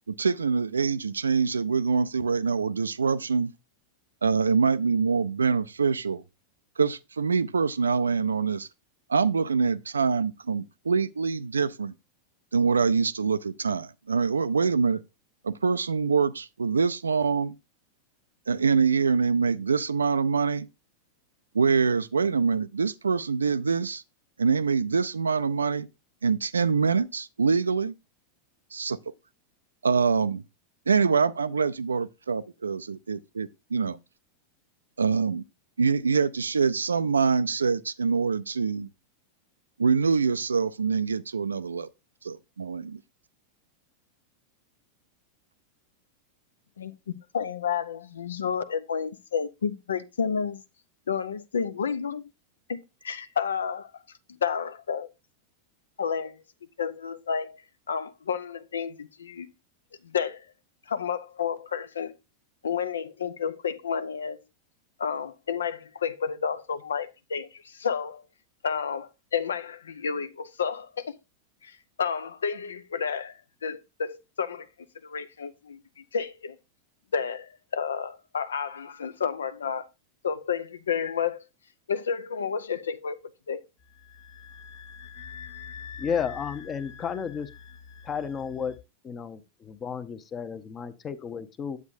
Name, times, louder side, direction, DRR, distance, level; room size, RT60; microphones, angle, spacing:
voice 1, 0.1-3.5 4.2-6.2 6.8-8.7 9.1-11.9 12.5-15.0 15.4-17.5 18.5-20.7 21.5-24.0 24.4-25.9 26.2-27.9 28.7-29.0 29.8-30.4 30.9-34.0 35.0-35.4 35.8-38.9 39.8-41.9 42.2-43.0, right 5 dB, 75° right, 0.3 m, -25 dB
voice 2, 47.3-50.6 51.1-52.3 52.7-54.0 54.4-55.1 56.0-56.4 56.8-57.6 57.9-59.5 60.0-60.5 60.9-62.2 62.6-64.4 65.0-68.2 68.6-71.2 71.6-74.7 75.0-76.6 77.1-79.9 80.2-81.4 81.9-83.2 83.5-83.6, left 6 dB, 70° left, 0.5 m, -31 dB
sound 1, 83.8-88.8, left 7 dB, 45° left, 1.3 m, -44 dB
voice 3, 86.0-87.5 88.1-88.7 89.0-91.8, left 7 dB, 25° left, 0.8 m, -32 dB
9.5 x 7.8 x 2.6 m
figure-of-eight pair, 90°, 0 cm